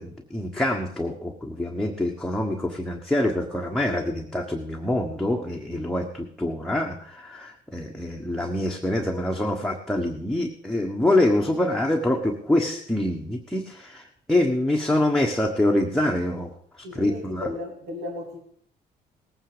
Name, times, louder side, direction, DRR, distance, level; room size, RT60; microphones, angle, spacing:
voice 1, 0.0-14.0 14.3-16.5 16.8-17.5, left 1 dB, 5° left, 1.3 m, -25 dB
voice 2, 16.8-18.4, left 1 dB, 75° right, 3.4 m, -35 dB
18.5 x 9.1 x 5.1 m
cardioid pair, 110°, 17 cm